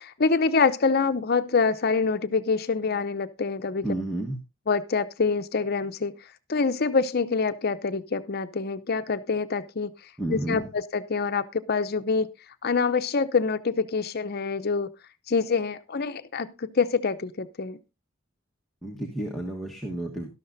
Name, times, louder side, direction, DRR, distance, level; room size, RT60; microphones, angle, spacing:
voice 1, 0.0-3.8 4.7-6.1 6.5-9.9 10.3-12.3 12.6-14.9 15.3-17.8, left 4 dB, 50° left, 10 dB, 0.7 m, -25 dB
voice 2, 3.8-4.4 10.2-10.7 18.8-20.3, right 1 dB, ahead, -3 dB, 1.3 m, -31 dB
12.5 x 12.5 x 2.7 m, 0.26 s
head